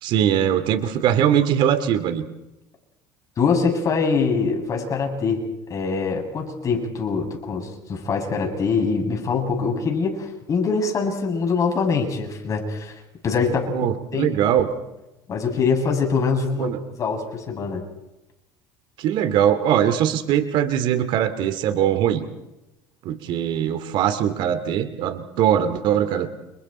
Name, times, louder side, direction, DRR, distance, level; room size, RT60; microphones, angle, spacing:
voice 1, 0.0-2.2 13.7-14.7 16.6-16.8 19.0-22.2 23.0-26.3, right 10 dB, 60° right, 10 dB, 2.7 m, -21 dB
voice 2, 3.4-5.4 5.7-12.9 13.2-14.3 15.3-17.8, left 5 dB, 40° left, 2 dB, 7.7 m, -24 dB
30.0 x 29.0 x 4.5 m, 0.94 s
supercardioid pair, 105°, 9 cm